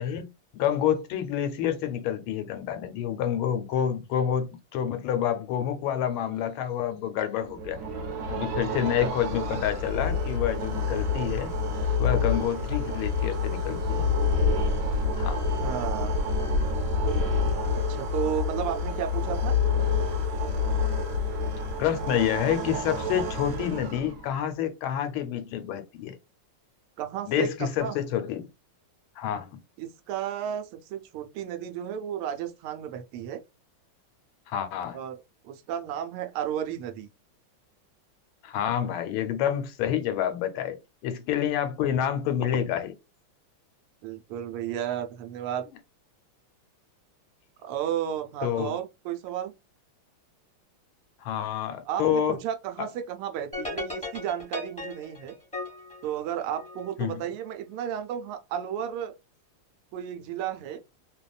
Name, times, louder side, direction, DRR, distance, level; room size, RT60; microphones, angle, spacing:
voice 1, 0.0-7.8 8.3-11.5 12.0-14.1 15.2-15.4 21.8-26.2 27.3-28.5 29.2-29.6 34.5-35.0 38.4-40.8 41.0-42.9 48.4-48.7 51.2-52.3 57.0-57.2, left 10 dB, 80° left, 1.4 m, -28 dB
sound 1, 7.4-24.4, left 4 dB, 65° right, 1.3 m, -28 dB
voice 2, 8.7-9.1 15.6-16.1 17.7-19.6 27.0-28.0 29.8-33.4 34.9-35.2 35.4-37.1 44.0-45.7 47.6-49.5 51.9-55.3 56.0-59.1 59.9-60.8, right 10 dB, 85° right, 1.5 m, -33 dB
sound 2, 53.5-56.9, left 2 dB, 5° left, 0.6 m, -37 dB
3.4 x 2.1 x 2.3 m
omnidirectional pair, 2.3 m